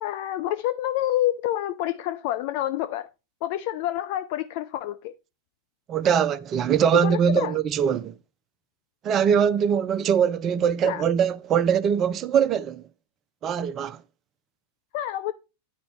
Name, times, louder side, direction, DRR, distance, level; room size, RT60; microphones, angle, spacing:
voice 1, 0.0-3.1 3.4-5.1 7.0-7.6 10.8-11.0 14.9-15.3, left 13 dB, 45° left, 0.5 m, -28 dB
voice 2, 5.9-8.1 9.0-12.8 13.4-14.0, right 8 dB, 30° right, 0.6 m, -22 dB
9.5 x 5.2 x 4.3 m
figure-of-eight pair, 90°, 0 cm